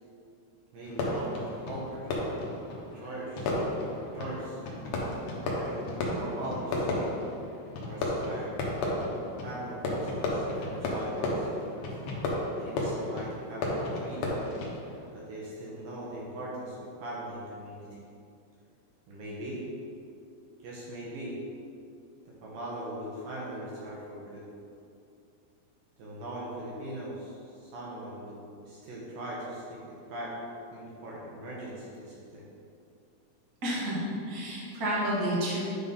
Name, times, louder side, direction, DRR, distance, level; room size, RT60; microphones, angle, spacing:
voice 1, 0.7-2.4 2.9-3.5 3.8-4.6 5.4-7.1 7.9-8.5 9.4-11.5 12.6-14.5 15.1-17.9 19.1-19.6 20.6-21.4 22.4-24.4 26.0-29.8 30.1-30.3 30.7-32.4, right 1 dB, 70° right, -5 dB, 2.4 m, -40 dB
Fireworks, 0.8-15.1, left 1 dB, 85° left, 1.7 m, -33 dB
voice 2, 33.6-35.6, right 1 dB, 55° right, -7 dB, 1.0 m, -31 dB
9.6 x 3.7 x 5.4 m, 2.6 s
omnidirectional pair, 5.0 m